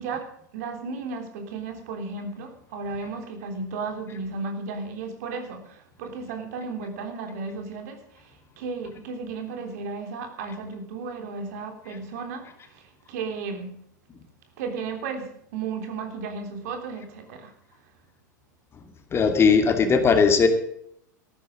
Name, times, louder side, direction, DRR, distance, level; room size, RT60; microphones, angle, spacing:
voice 1, 0.0-13.8 14.6-17.5, right 4 dB, 60° right, 3.4 m, -34 dB
voice 2, 19.1-20.5, left 5 dB, 25° left, 2.6 m, -18 dB
14.5 x 12.5 x 5.0 m
figure-of-eight pair, 90°, 10 cm